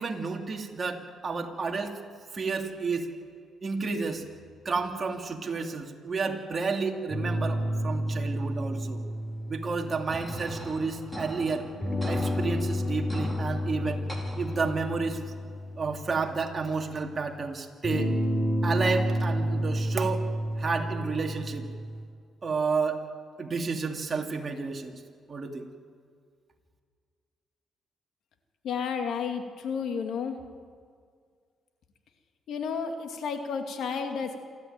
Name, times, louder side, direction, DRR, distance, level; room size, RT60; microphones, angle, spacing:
voice 1, 0.0-1.9 2.3-3.1 3.6-4.2 4.6-9.0 9.5-11.7 12.1-14.0 14.4-15.2 15.8-18.1 18.6-20.3 20.6-21.7 22.4-23.0 23.4-24.9 25.3-25.7, right 4 dB, 35° right, 2 dB, 2.7 m, -31 dB
sound 1, 7.1-11.0 11.8-16.9 17.8-22.0, equal, 25° left, 4.0 m, -31 dB
sound 2, 10.1-15.1, equal, ahead, 4.5 m, -40 dB
voice 2, 28.6-30.4 32.5-34.4, left 6 dB, 70° left, 5 dB, 2.3 m, -32 dB
27.5 x 13.5 x 9.2 m, 2.1 s
cardioid pair, 90°, 0 cm